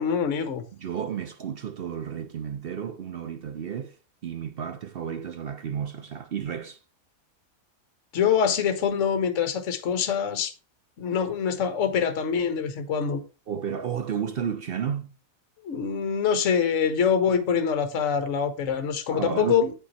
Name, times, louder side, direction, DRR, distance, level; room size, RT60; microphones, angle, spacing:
voice 1, 0.0-0.6 8.1-10.5 11.0-13.2 15.6-19.7, left 7 dB, 60° left, 1.2 m, -24 dB
voice 2, 0.7-4.0 4.2-6.8 13.5-15.1 19.1-19.6, right 8 dB, 60° right, 0.6 m, -32 dB
8.6 x 6.0 x 4.2 m
omnidirectional pair, 1.6 m